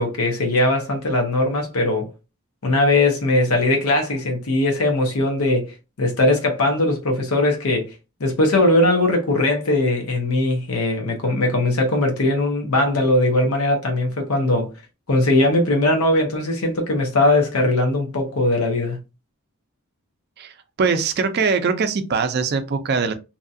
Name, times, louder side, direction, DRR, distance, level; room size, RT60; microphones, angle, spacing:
voice 1, 0.0-2.1 2.6-7.9 8.2-14.7 15.1-19.0, left 2 dB, 85° left, 0.7 m, -20 dB
voice 2, 20.8-23.1, right 5 dB, 50° right, 0.4 m, -21 dB
2.8 x 2.3 x 2.6 m
head